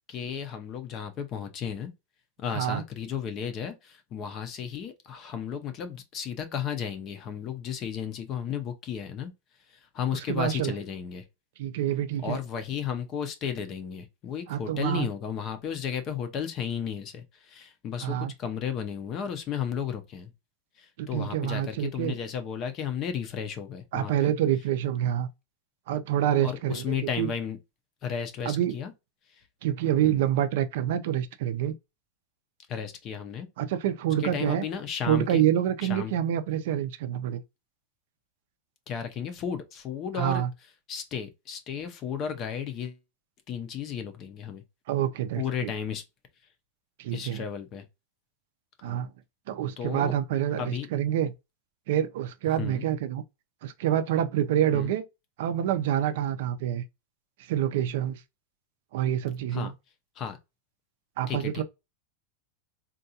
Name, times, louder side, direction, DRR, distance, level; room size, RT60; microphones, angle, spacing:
voice 1, 0.1-1.9 2.4-9.3 9.9-11.2 12.2-20.3 20.8-24.3 26.4-27.6 28.0-28.9 30.0-30.2 32.7-33.5 34.2-35.4 35.9-36.1 38.9-40.4 40.9-43.0 43.5-44.6 45.4-46.0 47.1-47.8 48.8-49.0 49.8-50.2 50.6-50.9 52.6-52.9 54.7-54.9 59.5-59.7 60.2-60.4 61.3-61.6, left 8 dB, 25° left, 0.5 m, -34 dB
voice 2, 2.5-2.8 10.3-10.7 11.6-12.4 14.5-15.1 18.0-18.3 21.0-22.2 23.9-25.3 25.9-27.3 28.4-28.7 29.6-31.8 33.6-34.6 35.1-37.4 40.1-40.5 44.9-45.7 47.0-47.4 48.8-49.1 49.5-51.3 51.9-53.2 53.6-55.0 55.4-56.8 57.5-58.2 58.9-59.7 61.2-61.6, right 11 dB, 55° right, 0.4 m, -27 dB
3.7 x 2.3 x 2.7 m
supercardioid pair, 175°, 0 cm